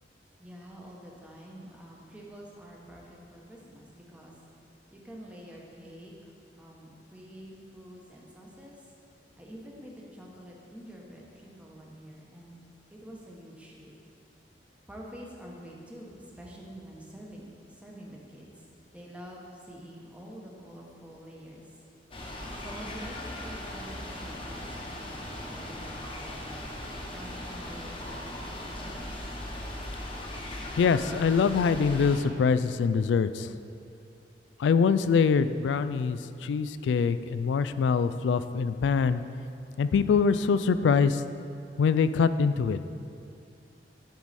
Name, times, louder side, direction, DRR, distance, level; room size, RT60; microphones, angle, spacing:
voice 1, 0.4-4.3 4.9-8.9 9.4-12.6 12.9-13.9 14.9-18.6 18.9-21.8 22.6-26.6 27.1-29.3, equal, 10° right, -2 dB, 1.0 m, -47 dB
sound 1, 22.1-32.2, left 1 dB, 30° left, 1.0 m, -38 dB
voice 2, 30.7-33.5 34.6-39.2 39.8-41.2 41.8-42.8, left 5 dB, 90° left, 13 dB, 0.3 m, -24 dB
10.5 x 4.7 x 4.1 m, 2.5 s
head